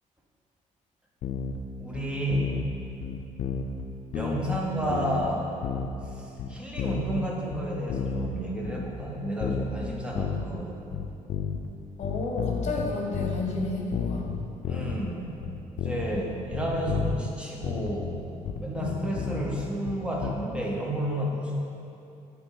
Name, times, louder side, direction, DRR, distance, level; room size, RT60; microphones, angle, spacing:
sound 1, 1.2-1.6 1.9-2.7 3.0-3.8 4.1-5.3 5.6-6.1 6.4-8.4 8.6-9.1 9.4-10.6 10.9-11.7 12.0-15.1 15.4-16.2 16.5-17.3 17.6-20.3, left 6 dB, 75° left, 0.4 m, -32 dB
voice 1, 1.8-2.6 4.1-5.5 6.0-10.7 14.7-21.6, right 1 dB, 10° right, -2 dB, 0.7 m, -31 dB
voice 2, 12.0-14.3 18.7-19.0, left 2 dB, 60° left, 0 dB, 0.8 m, -31 dB
8.6 x 3.0 x 3.8 m, 2.7 s
cardioid pair, 165°, 14 cm